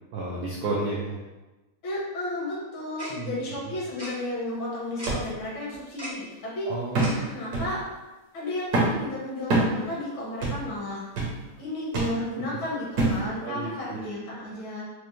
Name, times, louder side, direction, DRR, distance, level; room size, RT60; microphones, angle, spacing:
voice 1, 0.1-1.2 3.1-3.3 3.6-3.7 6.6-7.1 13.4-14.1, right 2 dB, 80° right, -4 dB, 0.8 m, -32 dB
voice 2, 1.8-6.7 7.0-7.8 8.3-11.0 11.6-14.8, left 1 dB, 70° left, -5 dB, 1.8 m, -33 dB
Tick-tock, 3.0-3.1 4.0-4.1 5.0-5.1 6.0-6.1 7.0-7.1, right 1 dB, 35° right, 0.4 m, -36 dB
sound 1, 5.1-5.3 5.7-5.8 6.9-7.2 7.5-7.8 8.7-9.0 9.5-9.8 10.4-10.7 11.2-11.4 11.9-12.2 13.0-13.3 13.9-14.0, right 2 dB, 60° right, 1.2 m, -25 dB
4.9 x 2.1 x 3.0 m, 1.1 s
omnidirectional pair, 2.3 m